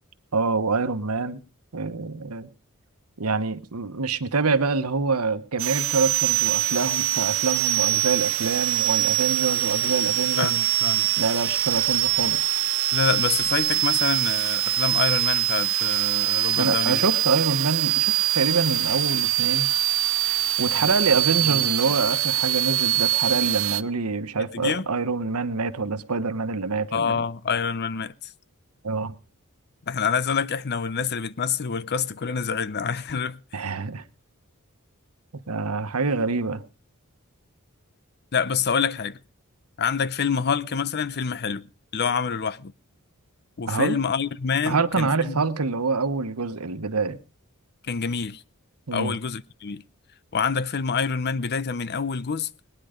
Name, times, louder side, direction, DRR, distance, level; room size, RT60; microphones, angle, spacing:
voice 1, 0.3-1.4 1.7-2.5 3.2-10.5 11.2-12.5 16.5-19.7 20.2-27.2 28.8-29.1 33.5-34.0 35.5-36.6 43.7-44.0 44.7-47.2 48.9-49.2, right 4 dB, 90° right, 1.1 m, -26 dB
sound 1, 5.6-23.8, right 14 dB, 65° right, 0.7 m, -23 dB
voice 2, 10.4-11.1 12.9-17.1 20.8-20.9 21.4-21.7 24.5-24.9 26.9-28.3 29.9-33.7 38.3-39.2 39.8-41.7 41.9-42.7 43.6-45.4 47.8-48.4 48.9-49.8 50.3-52.5, left 6 dB, 50° left, 0.7 m, -27 dB
21.0 x 10.0 x 5.1 m
head